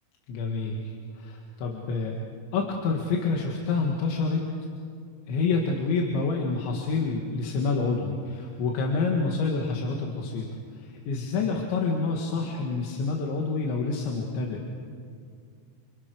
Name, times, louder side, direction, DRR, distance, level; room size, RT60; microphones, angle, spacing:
voice 1, 0.3-2.2 2.5-4.5 5.3-10.5 10.7-14.6, left 4 dB, 85° left, 0 dB, 4.4 m, -28 dB
30.0 x 26.0 x 6.4 m, 2.2 s
omnidirectional pair, 5.1 m